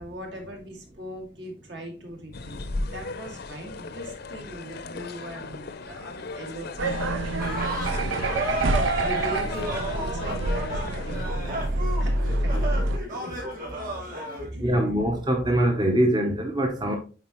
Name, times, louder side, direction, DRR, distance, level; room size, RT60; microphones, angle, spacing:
voice 1, 0.0-2.6 2.9-13.4 13.9-14.9, equal, 65° right, 2.2 m, -41 dB
sound 1, 2.3-11.3, left 3 dB, 55° left, 0.6 m, -37 dB
sound 2, 6.8-13.0, right 2 dB, 85° right, 0.6 m, -27 dB
sound 3, 7.4-14.5, right 1 dB, 45° right, 2.9 m, -32 dB
voice 2, 14.6-17.0, right 1 dB, 20° right, 0.7 m, -23 dB
9.0 x 4.1 x 3.0 m
head